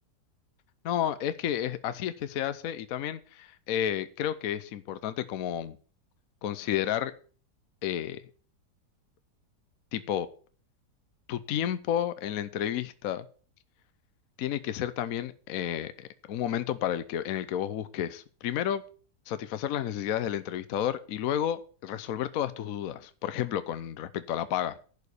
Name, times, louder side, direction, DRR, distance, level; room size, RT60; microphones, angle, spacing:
voice 1, 0.8-5.8 6.4-7.1 7.8-8.2 9.9-10.3 11.3-13.2 14.4-18.8 19.3-24.8, left 10 dB, 65° left, 13 dB, 1.0 m, -31 dB
11.0 x 5.0 x 8.1 m, 0.41 s
omnidirectional pair, 1.8 m